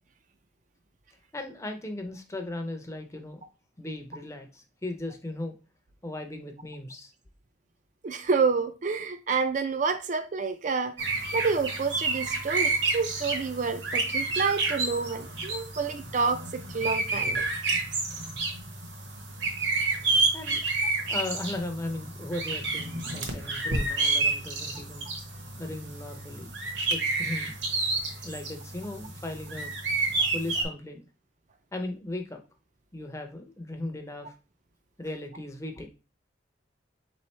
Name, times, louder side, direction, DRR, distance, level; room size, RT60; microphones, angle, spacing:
voice 1, 1.3-3.4 3.8-5.5 6.0-7.1 20.3-20.6 21.1-25.1 25.6-26.5 26.9-27.5 28.2-29.7 30.3-31.1 31.7-32.4 32.9-34.3 35.0-35.9, left 2 dB, 15° left, 0.6 m, -37 dB
voice 2, 8.0-10.9 11.3-17.5, right 4 dB, 40° right, 0.4 m, -28 dB
sound 1, 11.0-30.6, right 3 dB, 65° right, 1.1 m, -30 dB
3.6 x 3.1 x 4.2 m
head